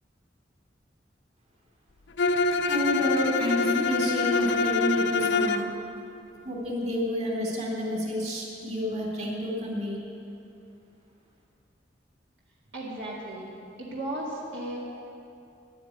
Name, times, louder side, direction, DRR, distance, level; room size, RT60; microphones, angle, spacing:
Bowed string instrument, 2.2-5.7, left 4 dB, 80° left, 0.6 m, -25 dB
voice 1, 2.7-5.8 6.4-10.0, equal, 40° right, -3 dB, 3.3 m, -29 dB
voice 2, 12.7-13.5 13.8-14.8, right 1 dB, 75° right, -5 dB, 2.1 m, -35 dB
11.0 x 9.6 x 9.4 m, 2.6 s
head